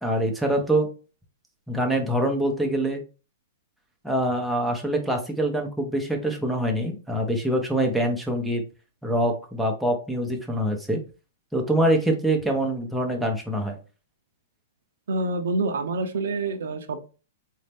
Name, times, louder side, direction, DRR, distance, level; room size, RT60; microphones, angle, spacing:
voice 1, 0.0-0.9 1.7-3.0 4.0-8.6 9.0-11.0 11.5-13.8, right 1 dB, ahead, 0 dB, 0.8 m, -24 dB
voice 2, 15.1-17.0, right 2 dB, 80° right, 7 dB, 0.7 m, -27 dB
4.2 x 2.7 x 3.4 m, 0.34 s
hypercardioid pair, 150°, 0 cm